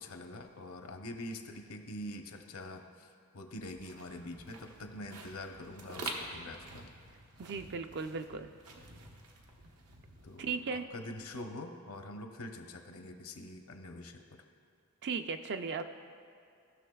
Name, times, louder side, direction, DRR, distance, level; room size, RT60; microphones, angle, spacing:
voice 1, 0.0-6.9 10.2-14.4, left 1 dB, 70° left, 5 dB, 0.8 m, -45 dB
sound 1, 3.6-10.8, right 3 dB, 85° right, 1.0 m, -48 dB
voice 2, 7.4-8.5 10.4-10.8 15.0-15.8, right 5 dB, 50° right, 8 dB, 0.4 m, -36 dB
17.5 x 6.4 x 2.3 m, 2.4 s
head